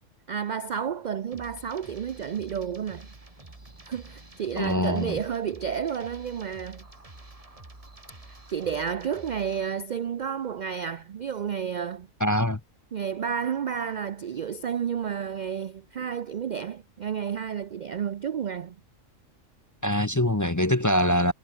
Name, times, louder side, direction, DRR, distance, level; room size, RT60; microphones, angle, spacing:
voice 1, 0.3-3.1 3.8-6.8 8.3-12.1 12.9-18.8, right 7 dB, 65° right, 0.4 m, -31 dB
sound 1, 1.3-9.7, right 2 dB, 25° right, 2.6 m, -48 dB
voice 2, 4.6-5.2 12.2-12.6 19.8-21.3, left 1 dB, 20° left, 0.6 m, -23 dB
omnidirectional pair, 1.4 m